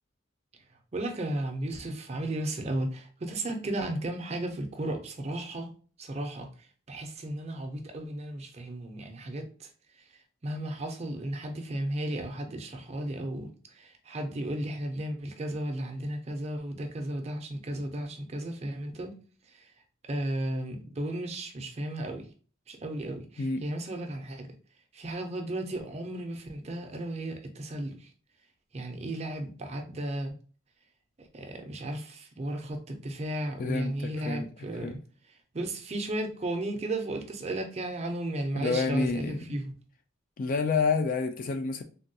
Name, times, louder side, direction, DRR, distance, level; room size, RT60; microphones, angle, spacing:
voice 1, 0.9-5.7 6.0-9.7 9.9-10.1 10.4-19.1 19.5-19.7 20.1-22.3 22.7-24.5 24.9-28.1 28.7-30.3 31.3-35.0 35.5-39.7, right 1 dB, 30° right, 0.5 m, -34 dB
voice 2, 33.6-34.5 34.8-35.0 38.5-39.6 40.4-41.8, left 4 dB, 40° left, 0.3 m, -29 dB
3.4 x 2.3 x 2.6 m
head